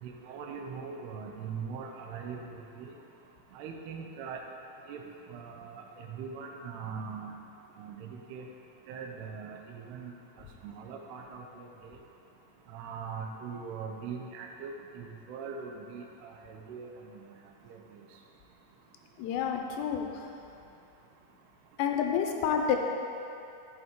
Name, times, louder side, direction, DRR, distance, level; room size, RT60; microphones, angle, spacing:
voice 1, 0.0-2.9 3.5-4.4 4.9-5.0 5.3-7.3 7.8-8.5 8.9-10.1 10.6-11.7 12.7-17.3 17.7-18.0, right 5 dB, 80° right, 2 dB, 2.4 m, -41 dB
voice 2, 19.2-20.1 21.8-22.8, left 7 dB, 80° left, 3 dB, 2.6 m, -29 dB
10.5 x 8.5 x 3.7 m, 2.8 s
omnidirectional pair, 5.5 m